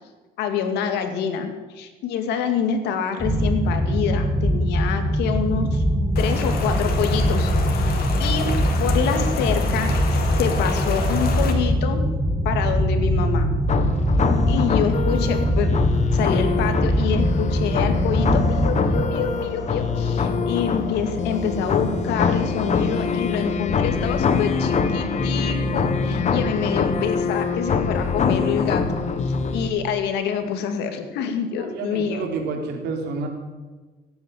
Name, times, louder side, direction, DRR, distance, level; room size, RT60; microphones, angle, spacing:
voice 1, 0.4-5.8 6.2-8.5 8.8-9.9 10.4-12.0 12.4-13.5 14.5-15.8 16.1-32.2, left 7 dB, 85° left, 7 dB, 2.2 m, -26 dB
sound 1, 3.2-19.1, equal, 10° right, 2.3 m, -22 dB
Rain, 6.2-11.5, left 5 dB, 65° left, 2.7 m, -30 dB
sound 2, 13.7-29.7, left 5 dB, 45° left, 1.5 m, -24 dB
voice 2, 31.6-33.3, right 4 dB, 80° right, 2 dB, 3.5 m, -29 dB
17.0 x 9.5 x 8.3 m, 1.3 s
cardioid pair, 110°, 17 cm